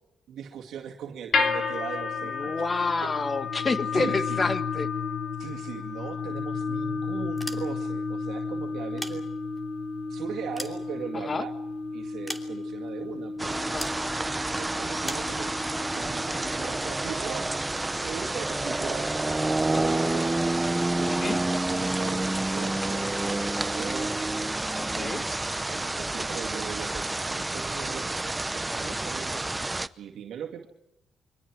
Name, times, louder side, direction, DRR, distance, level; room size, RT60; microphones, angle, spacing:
voice 1, 0.3-3.2 3.9-4.4 5.4-9.3 10.1-11.5 11.9-13.9 14.5-15.5 15.9-17.5 18.0-24.2 24.9-25.3 25.7-29.5 30.0-30.7, right 8 dB, 75° right, 1 dB, 2.2 m, -39 dB
sound 1, 1.3-17.5, left 4 dB, 55° left, 3.6 m, -32 dB
voice 2, 2.4-4.9 11.3-11.4 13.6-13.9 20.2-20.3 21.1-21.4 24.8-25.2 28.7-29.0, left 3 dB, 30° left, 10 dB, 1.5 m, -29 dB
sound 2, 7.3-8.1 8.8-9.8 10.2-11.5 12.3-12.9 13.8-14.1 15.0-15.4, left 1 dB, 10° left, 2.9 m, -39 dB
sound 3, 13.4-29.9, right 2 dB, 15° right, 0.8 m, -29 dB
29.5 x 24.0 x 4.8 m, 0.87 s
cardioid pair, 90°, 0 cm